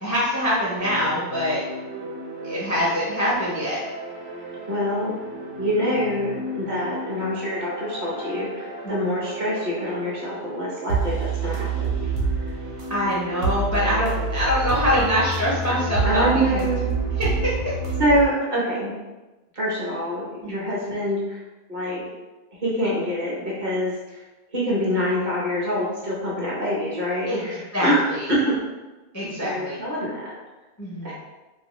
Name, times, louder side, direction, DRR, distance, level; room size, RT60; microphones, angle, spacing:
voice 1, 0.0-1.6 2.4-3.8 8.8-8.9 12.9-16.6 17.2-17.5 20.4-20.6 27.3-27.4 27.7-28.3 29.1-29.8 30.8-31.1, equal, 25° left, -7 dB, 0.4 m, -24 dB
sound 1, 0.8-18.3, right 3 dB, 85° right, 1.0 m, -29 dB
voice 2, 4.7-5.2 5.6-11.9 12.4-12.5 16.0-17.0 18.0-18.9 19.5-21.4 21.7-22.0 22.6-24.2 24.5-28.0 28.4-28.5 29.2-30.3 31.0-31.1, equal, 50° right, -6 dB, 0.8 m, -25 dB
2.4 x 2.4 x 2.9 m, 1.1 s
omnidirectional pair, 1.1 m